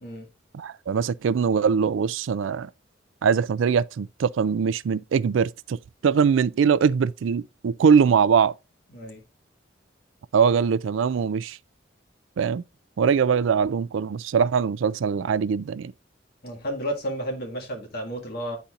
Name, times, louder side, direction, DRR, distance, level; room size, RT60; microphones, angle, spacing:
voice 1, 0.5-2.7 3.2-5.8 6.0-8.5 10.3-11.6 12.4-12.6 13.0-15.9, right 6 dB, 80° right, 0.4 m, -22 dB
voice 2, 8.9-9.2 16.4-18.6, equal, 55° left, 2.0 m, -32 dB
10.5 x 4.2 x 2.5 m
head